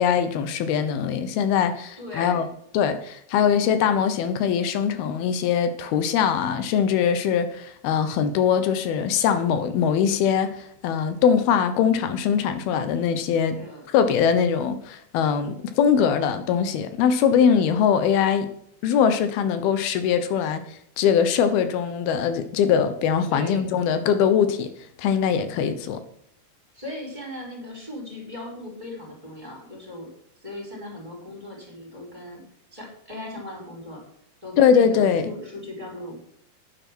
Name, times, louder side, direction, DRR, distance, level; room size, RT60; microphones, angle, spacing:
voice 1, 0.0-2.4 2.7-10.5 10.8-13.6 13.9-18.5 18.8-20.6 21.0-24.7 25.0-26.0 34.6-35.3, left 7 dB, 80° left, 3.0 m, -22 dB
voice 2, 2.0-2.4 13.5-13.9 23.3-23.6 26.7-30.1 30.4-32.4 32.7-34.0 34.4-36.2, left 1 dB, 10° right, 4.9 m, -38 dB
11.0 x 9.5 x 6.1 m
omnidirectional pair, 4.4 m